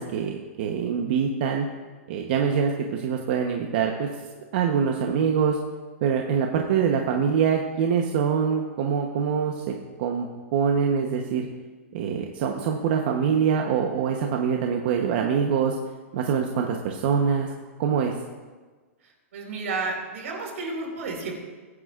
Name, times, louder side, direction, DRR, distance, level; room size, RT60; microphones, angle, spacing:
voice 1, 0.0-1.7 2.1-4.1 4.5-5.6 6.0-9.6 10.0-11.5 11.9-15.8 16.1-17.5 17.8-18.1, right 7 dB, 45° right, 2 dB, 1.0 m, -24 dB
voice 2, 19.0-21.3, right 3 dB, 75° right, 1 dB, 4.3 m, -32 dB
22.5 x 9.8 x 2.5 m, 1.4 s
supercardioid pair, 170°, 8 cm